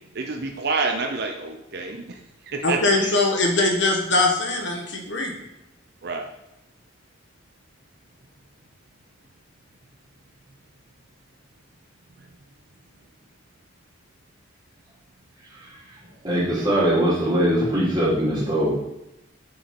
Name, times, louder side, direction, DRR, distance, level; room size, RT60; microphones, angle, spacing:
voice 1, 0.1-2.1 2.5-3.2 6.0-6.3, right 4 dB, 55° right, 4 dB, 0.7 m, -28 dB
voice 2, 2.6-5.3, left 2 dB, 60° left, 1 dB, 1.4 m, -21 dB
voice 3, 16.2-18.7, right 1 dB, 20° right, -6 dB, 3.0 m, -21 dB
6.9 x 6.2 x 4.4 m, 0.87 s
head